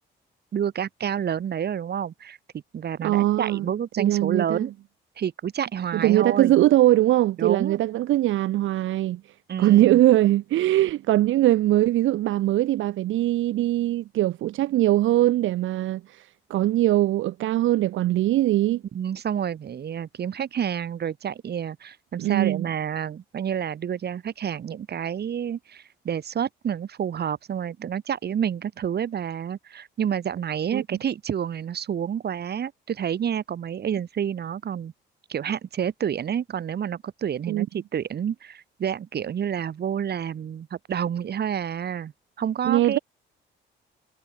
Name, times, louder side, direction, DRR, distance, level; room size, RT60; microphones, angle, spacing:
voice 1, 0.5-2.4 2.7-4.7 5.2-6.5 7.4-7.8 9.5-10.0 18.9-34.9 35.3-42.1 42.4-43.0, right 8 dB, 55° right, 2.5 m, -29 dB
voice 2, 3.0-3.7 4.0-4.7 5.9-9.2 9.6-18.8 22.2-22.7 30.7-31.0 37.5-37.7 42.6-43.0, right 14 dB, 75° right, 0.8 m, -21 dB
cardioid pair, 90°, 20 cm